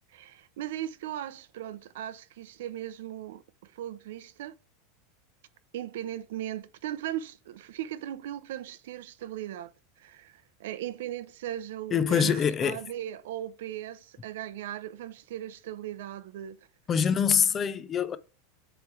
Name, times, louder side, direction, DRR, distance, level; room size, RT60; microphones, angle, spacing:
voice 1, 0.1-4.5 5.7-9.7 10.0-16.6, right 12 dB, 75° right, 0.6 m, -38 dB
voice 2, 11.9-12.8 16.9-18.2, left 7 dB, 20° left, 0.4 m, -24 dB
7.9 x 3.1 x 4.6 m
supercardioid pair, 175°, 0 cm